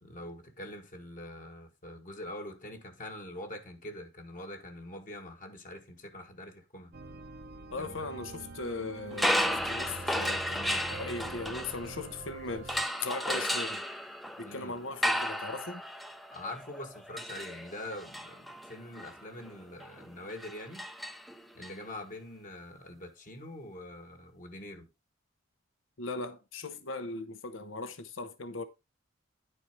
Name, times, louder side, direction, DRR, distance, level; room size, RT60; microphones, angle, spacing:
voice 1, 0.0-7.0 7.8-7.9 14.4-14.8 16.3-20.9 21.6-24.9, left 1 dB, 45° left, 1.6 m, -44 dB
sound 1, 6.9-12.8, right 3 dB, 55° right, 0.8 m, -45 dB
voice 2, 7.7-13.8 14.4-15.8 26.0-28.6, left 3 dB, 80° left, 1.0 m, -39 dB
sound 2, 9.1-12.2 12.7-21.7, equal, ahead, 0.5 m, -34 dB
10.0 x 4.5 x 4.4 m
head